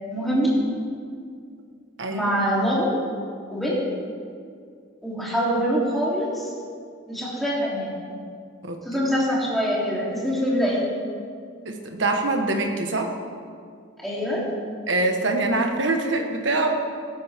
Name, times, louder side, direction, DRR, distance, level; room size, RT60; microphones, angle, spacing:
voice 1, 0.1-0.6 2.1-2.9 3.5-3.9 5.0-6.5 7.1-8.0 8.8-10.8 14.0-14.5, equal, ahead, -7 dB, 3.3 m, -24 dB
voice 2, 2.0-2.3 8.6-8.8 11.6-13.1 14.9-16.7, right 2 dB, 65° right, 3 dB, 1.5 m, -24 dB
17.0 x 13.0 x 3.6 m, 2.2 s
head